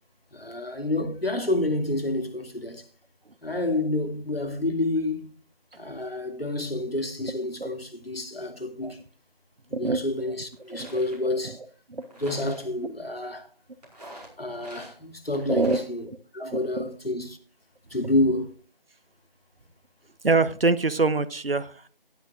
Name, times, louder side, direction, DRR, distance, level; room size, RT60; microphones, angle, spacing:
voice 1, 0.3-2.8 3.4-5.3 5.8-9.0 9.7-11.6 12.2-13.5 14.4-16.1 16.3-17.4 17.9-18.5, left 2 dB, 80° left, 2.5 m, -29 dB
voice 2, 9.7-10.0 10.7-11.0 11.4-11.6 11.9-12.2 15.5-15.8 16.5-16.9 20.2-21.9, right 3 dB, 75° right, 1.0 m, -25 dB
sound 1, 9.8-9.9 10.5-11.3 12.0-12.7 13.8-14.9 15.3-15.9, right 1 dB, 45° right, 4.8 m, -46 dB
18.0 x 9.5 x 2.4 m
figure-of-eight pair, 170°, 29 cm